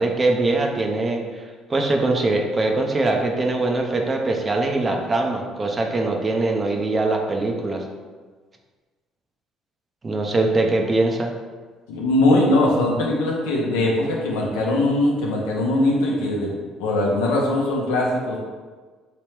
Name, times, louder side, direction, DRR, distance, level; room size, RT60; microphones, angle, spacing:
voice 1, 0.0-7.8 10.0-11.3, right 2 dB, 30° right, 2 dB, 0.5 m, -22 dB
voice 2, 11.9-16.5 16.8-18.4, left 1 dB, 90° left, -2 dB, 0.7 m, -21 dB
3.1 x 2.9 x 3.2 m, 1.4 s
supercardioid pair, 75°, 0 cm